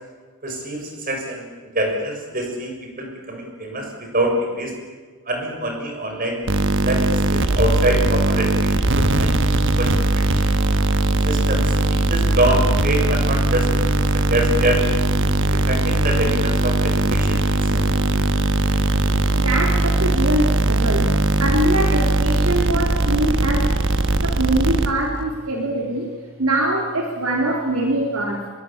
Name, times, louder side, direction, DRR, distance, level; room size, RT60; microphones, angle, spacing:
voice 1, 0.4-1.5 1.8-2.7 3.0-4.7 5.3-6.4 6.8-10.6 11.3-14.8 15.5-17.9, right 1 dB, 40° right, 2 dB, 6.7 m, -25 dB
sound 1, 6.5-25.2, right 2 dB, 55° right, 1.3 m, -19 dB
voice 2, 19.4-23.7 24.2-26.1 26.4-28.5, right 1 dB, 70° right, 1 dB, 3.4 m, -23 dB
25.0 x 21.5 x 8.6 m, 1.4 s
head